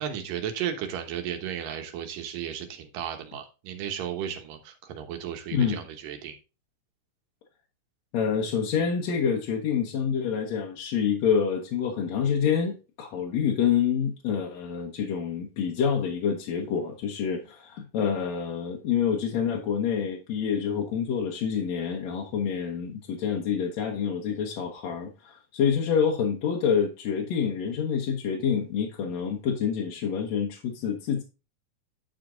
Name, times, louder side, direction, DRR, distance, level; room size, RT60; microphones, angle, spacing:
voice 1, 0.0-6.4, right 9 dB, 85° right, 2.9 m, -34 dB
voice 2, 5.5-5.8 8.1-31.2, left 7 dB, 65° left, 2.1 m, -27 dB
10.0 x 5.0 x 3.8 m
omnidirectional pair, 3.7 m